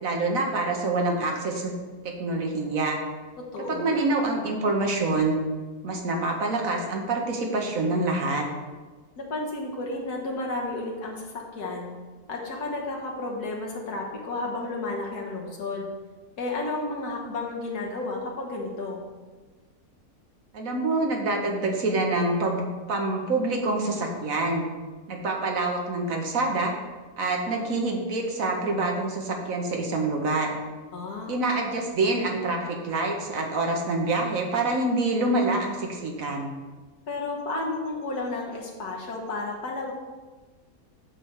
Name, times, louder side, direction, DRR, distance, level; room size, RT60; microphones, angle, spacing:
voice 1, 0.0-1.7 2.0-3.0 3.7-5.4 5.8-8.5 20.5-24.7 25.1-26.7 27.2-30.6 31.3-36.5, right 2 dB, 60° right, 1 dB, 1.4 m, -26 dB
voice 2, 3.4-3.9 9.2-12.0 12.3-15.9 16.4-19.1 30.9-31.5 37.1-39.9, left 2 dB, 75° left, -1 dB, 1.8 m, -32 dB
8.5 x 3.3 x 6.4 m, 1.3 s
omnidirectional pair, 1.7 m